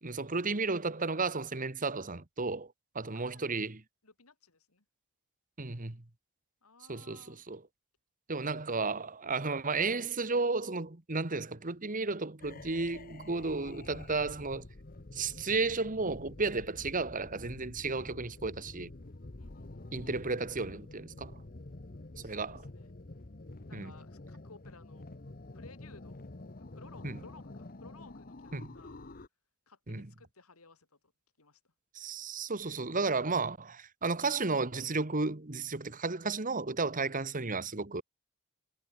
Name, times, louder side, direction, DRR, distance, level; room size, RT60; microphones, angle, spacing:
voice 1, 0.0-3.8 5.6-6.0 6.9-7.6 8.3-14.6 15.1-18.9 19.9-21.4 22.2-22.6 23.7-23.9 27.0-27.2 28.5-28.7 29.9-30.1 31.9-38.0, right 3 dB, 40° right, 1.6 m, -33 dB
voice 2, 3.1-3.6 4.0-4.8 6.6-7.4 19.4-19.9 22.2-22.9 23.6-25.1 25.5-26.2 26.6-29.1 29.7-31.1 31.4-31.7, left 3 dB, 85° left, 3.2 m, -58 dB
sound 1, 12.4-29.3, left 2 dB, 40° left, 1.1 m, -48 dB
head